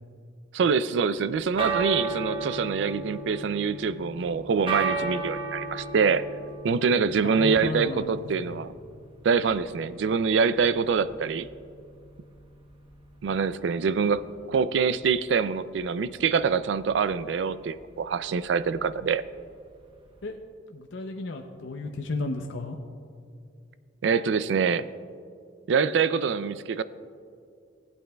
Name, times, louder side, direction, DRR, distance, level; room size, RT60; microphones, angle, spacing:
voice 1, 0.5-6.3 6.6-8.7 9.2-11.5 13.2-19.2 24.0-24.9 25.7-26.8, right 5 dB, 70° right, 15 dB, 0.3 m, -25 dB
sound 1, 1.2-20.3, right 4 dB, 30° right, 0.9 m, -36 dB
voice 2, 7.2-8.6 20.2-20.4 20.7-22.8, left 3 dB, 75° left, 3 dB, 0.6 m, -33 dB
18.0 x 8.8 x 2.3 m, 2.3 s
head